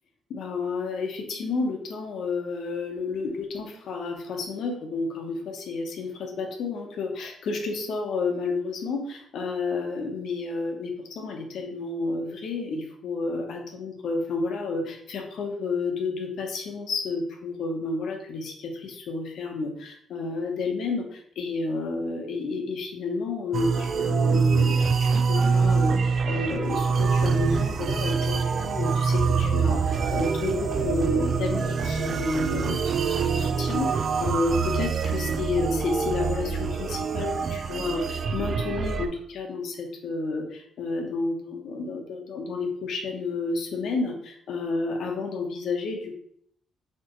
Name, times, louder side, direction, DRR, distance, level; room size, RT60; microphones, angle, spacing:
voice 1, 0.3-46.1, left 3 dB, 70° left, 3 dB, 1.0 m, -31 dB
sound 1, 23.5-39.1, right 5 dB, 50° right, 0.4 m, -25 dB
4.4 x 3.6 x 3.1 m, 0.68 s
cardioid pair, 90°, 0 cm